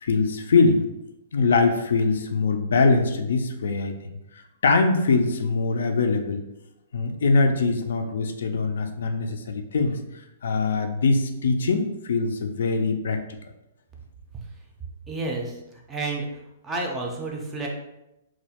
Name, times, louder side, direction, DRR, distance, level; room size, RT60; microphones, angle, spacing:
voice 1, 0.0-0.8 1.3-3.9 4.6-6.4 6.9-10.0 10.4-13.2, left 4 dB, 80° left, 6 dB, 0.3 m, -22 dB
voice 2, 15.1-15.6 15.9-16.3 16.6-17.7, right 2 dB, 10° right, 0 dB, 0.4 m, -30 dB
2.3 x 2.1 x 2.8 m, 0.89 s
hypercardioid pair, 160°, 0 cm